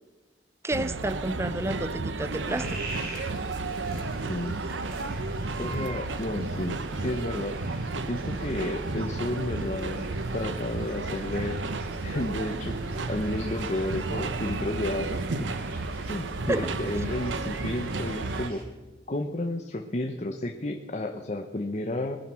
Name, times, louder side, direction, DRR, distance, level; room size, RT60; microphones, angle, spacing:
voice 1, 0.6-2.8 16.5-16.7, right 1 dB, 15° right, 0.5 m, -30 dB
sound 1, 0.7-18.5, right 3 dB, 90° right, 0.9 m, -32 dB
sound 2, 2.5-18.6, right 2 dB, 60° right, 4.7 m, -45 dB
voice 2, 4.3-4.6 5.6-7.6 8.1-11.6 12.0-15.5 16.0-18.6 19.1-22.2, left 1 dB, 40° left, 0.9 m, -32 dB
20.5 x 10.5 x 6.3 m
head